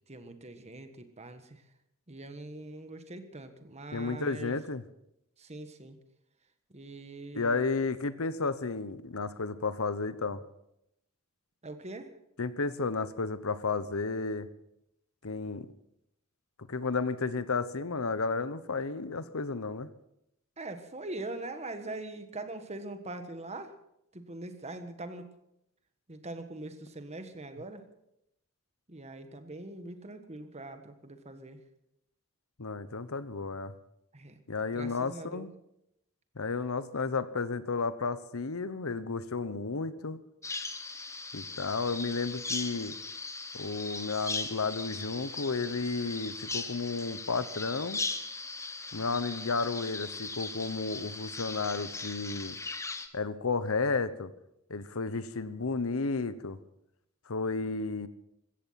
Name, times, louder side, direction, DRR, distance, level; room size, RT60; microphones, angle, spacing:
voice 1, 0.1-1.6 2.1-4.6 5.4-6.0 6.7-7.6 11.6-12.1 20.6-23.7 24.1-25.3 26.1-27.8 28.9-31.6 34.1-34.4 34.7-35.5, right 2 dB, 30° right, 8 dB, 1.5 m, -42 dB
voice 2, 3.9-4.8 7.3-10.4 12.4-14.5 15.2-15.7 16.7-19.9 32.6-33.7 34.5-35.5 36.4-40.2 41.3-43.0 43.5-48.0 48.9-52.6 53.1-54.3 54.7-56.6 57.3-58.1, left 4 dB, 85° left, 14 dB, 1.0 m, -32 dB
Bird vocalization bird call bird song, 40.4-53.1, left 3 dB, 15° left, 1.1 m, -39 dB
16.5 x 14.0 x 5.8 m, 0.82 s
head